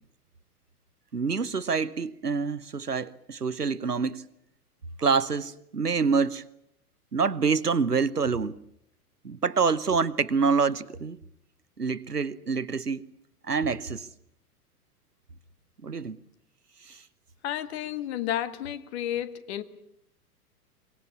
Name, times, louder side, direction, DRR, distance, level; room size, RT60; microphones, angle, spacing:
voice 1, 1.1-4.2 5.0-6.4 7.1-8.6 9.2-11.2 11.8-13.1 13.4-14.1 15.8-16.2 16.9-17.0, right 5 dB, 85° right, 1.1 m, -26 dB
voice 2, 17.4-19.6, left 11 dB, 45° left, 1.7 m, -31 dB
24.5 x 21.5 x 8.6 m
figure-of-eight pair, 100°, 46 cm